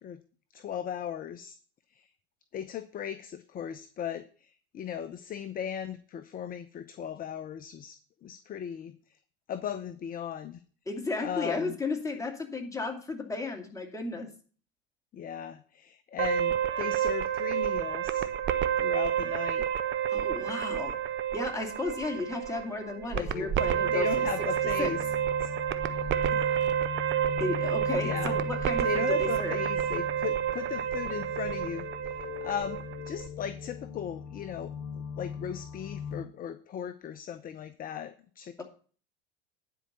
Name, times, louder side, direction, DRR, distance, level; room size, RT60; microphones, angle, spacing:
voice 1, 0.5-1.6 1.9-2.1 2.5-9.0 9.5-10.6 11.2-11.7 15.1-18.3 18.8-19.7 23.1-23.5 23.9-25.0 25.4-25.5 28.0-28.4 28.8-31.9 32.2-32.8 33.1-34.7 35.2-38.6, left 9 dB, 30° left, 12 dB, 0.7 m, -37 dB
voice 2, 10.9-14.3 20.1-21.0 21.3-24.3 24.8-24.9 27.4-29.6, left 3 dB, 10° left, 2 dB, 2.4 m, -34 dB
sound 1, 16.2-33.3, right 10 dB, 40° right, 0.9 m, -30 dB
sound 2, 23.2-36.2, left 7 dB, 55° left, 0.8 m, -40 dB
10.0 x 4.7 x 6.8 m, 0.42 s
hypercardioid pair, 90°, 30 cm